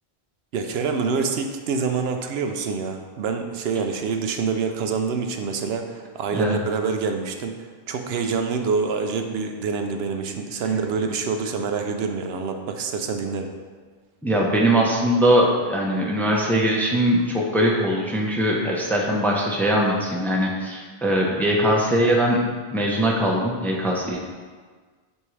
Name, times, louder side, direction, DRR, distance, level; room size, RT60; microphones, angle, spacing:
voice 1, 0.5-7.5 7.9-13.5, right 5 dB, 80° right, 5 dB, 0.8 m, -26 dB
voice 2, 14.2-22.4 22.7-24.2, right 1 dB, ahead, -2 dB, 0.6 m, -21 dB
8.1 x 3.6 x 3.2 m, 1.5 s
omnidirectional pair, 1.0 m